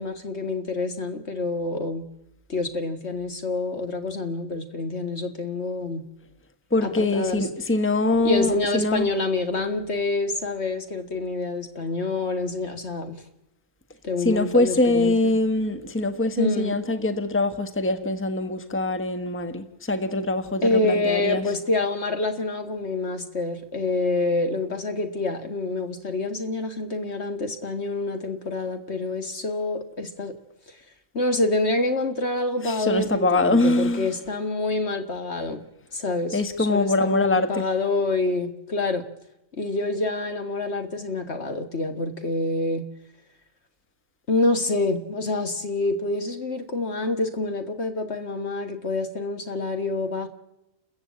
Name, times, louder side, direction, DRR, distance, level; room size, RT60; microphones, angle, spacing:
voice 1, 0.0-2.0 2.5-6.0 6.8-7.4 8.2-13.2 14.0-15.3 16.4-16.8 20.6-30.3 31.1-35.6 35.9-39.0 39.6-42.9 44.3-50.3, left 2 dB, 55° left, 7 dB, 1.9 m, -27 dB
voice 2, 6.7-9.1 14.2-21.4 32.6-34.1 36.3-37.6, left 2 dB, 10° left, 9 dB, 1.3 m, -23 dB
29.0 x 14.5 x 8.7 m, 0.92 s
omnidirectional pair, 1.4 m